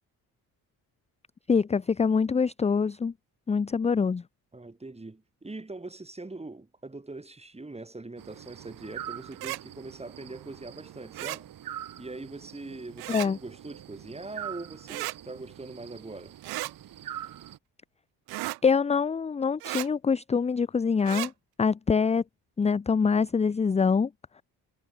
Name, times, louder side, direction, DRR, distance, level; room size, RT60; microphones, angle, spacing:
voice 1, 1.5-3.1 3.5-4.2 13.1-13.4 18.6-21.3 21.6-22.2 22.6-24.1, left 5 dB, 20° left, 0.5 m, -24 dB
voice 2, 4.5-11.5 12.0-16.4, right 2 dB, 15° right, 4.1 m, -42 dB
sound 1, 8.2-17.6, right 11 dB, 65° right, 1.8 m, -44 dB
sound 2, 9.3-9.6 11.1-11.4 13.0-13.3 14.9-15.2 16.4-16.7 18.3-18.6 19.6-19.9 21.0-21.3, right 20 dB, 90° right, 1.1 m, -34 dB
cardioid pair, 75°, 37 cm